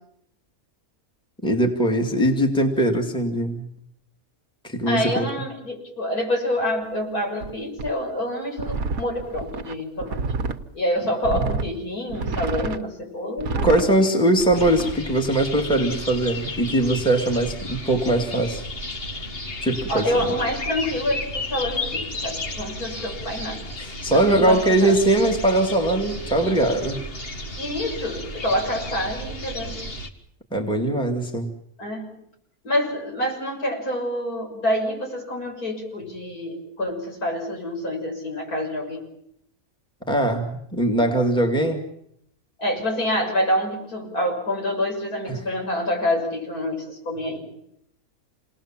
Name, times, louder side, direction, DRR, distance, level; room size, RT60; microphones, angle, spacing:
voice 1, 1.4-3.7 4.6-5.3 11.3-11.5 13.6-18.6 19.6-20.3 23.8-27.0 30.5-31.5 40.1-41.8 45.3-45.4, right 1 dB, 5° left, 2 dB, 2.3 m, -21 dB
voice 2, 4.9-10.2 10.7-13.9 19.9-23.6 24.1-25.0 27.6-29.9 31.8-32.1 32.6-39.1 42.6-47.4, left 1 dB, 80° left, 1 dB, 7.1 m, -27 dB
sound 1, 7.4-7.5 7.8-7.9 8.6-10.6 11.2-11.7 12.1-12.8 13.4-13.9 14.4-15.0, right 4 dB, 75° right, 1.6 m, -28 dB
sound 2, 14.5-30.1, left 1 dB, 40° left, 2.1 m, -33 dB
28.5 x 20.0 x 7.4 m, 0.75 s
omnidirectional pair, 1.5 m